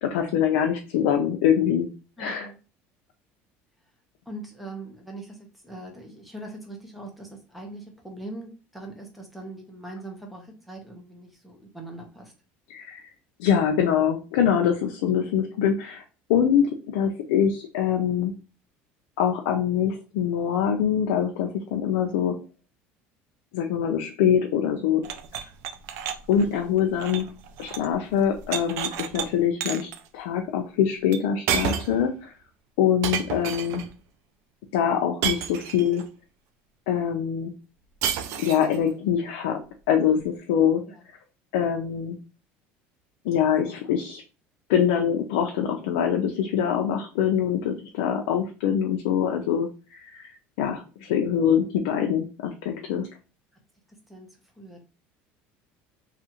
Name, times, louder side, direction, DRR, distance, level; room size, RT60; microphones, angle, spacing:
voice 1, 0.0-1.9 2.2-2.5 12.7-13.0 13.4-16.0 16.3-18.4 19.2-22.4 23.5-25.0 26.3-27.3 27.6-32.3 32.8-33.8 34.7-36.1 36.9-37.5 38.4-39.6 39.9-40.8 41.5-42.2 43.2-44.2 44.7-53.1, left 8 dB, 90° left, 3 dB, 0.4 m, -24 dB
voice 2, 2.2-2.6 4.3-12.3 40.9-41.0 54.1-54.3 54.6-54.8, right 2 dB, ahead, 2 dB, 0.8 m, -41 dB
sound 1, 25.0-27.9 28.2-29.3 29.6-30.0 31.1-31.2 31.5-32.0 33.0-33.9 35.2-36.0 38.0-38.8, right 8 dB, 65° right, 0.4 m, -30 dB
2.8 x 2.4 x 2.7 m, 0.33 s
cardioid pair, 125°, 5 cm